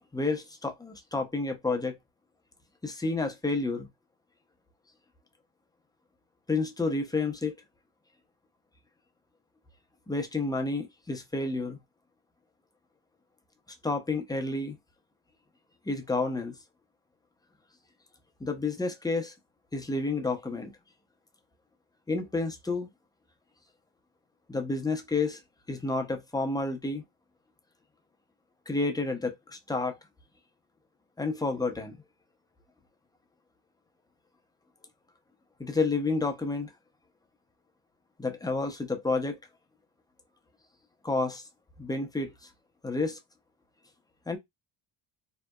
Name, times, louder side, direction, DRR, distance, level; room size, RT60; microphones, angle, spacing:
voice 1, 0.1-2.0 2.8-3.9 6.5-7.5 10.1-11.8 13.8-14.8 15.9-16.5 18.4-19.3 19.7-20.7 22.1-22.9 24.5-25.4 25.7-27.0 28.7-30.0 31.2-32.0 35.6-36.7 38.2-39.4 41.0-41.4 41.8-42.3 42.8-43.2 44.3-44.4, left 3 dB, 10° left, 0.6 m, -30 dB
2.8 x 2.0 x 2.2 m
supercardioid pair, 75°, 50 cm